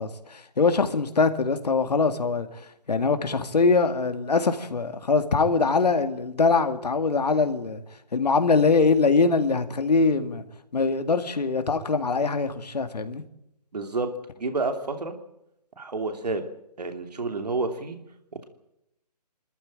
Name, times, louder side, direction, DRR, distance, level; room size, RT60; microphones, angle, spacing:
voice 1, 0.0-2.6 2.9-7.8 8.1-10.4 10.7-13.2, left 4 dB, 75° left, 2.2 m, -23 dB
voice 2, 13.7-14.1 14.4-15.1 15.8-16.4 16.8-18.0, right 3 dB, 70° right, 3.0 m, -29 dB
24.0 x 14.0 x 8.9 m
hypercardioid pair, 180°, 21 cm